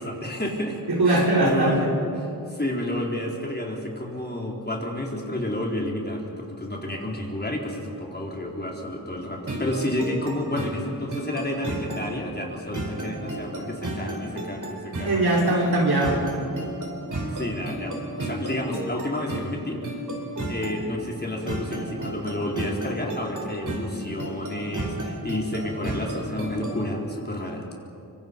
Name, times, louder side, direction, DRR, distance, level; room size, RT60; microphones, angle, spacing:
voice 1, 0.0-1.8 2.2-15.2 17.3-19.8 20.5-27.6, left 1 dB, 25° left, -1 dB, 4.2 m, -30 dB
voice 2, 0.9-1.9 15.0-16.3, right 2 dB, 85° right, -2 dB, 4.5 m, -21 dB
sound 1, 9.4-26.9, right 1 dB, 55° right, 4.3 m, -33 dB
25.5 x 24.0 x 5.4 m, 2.7 s
wide cardioid pair, 55°, 37 cm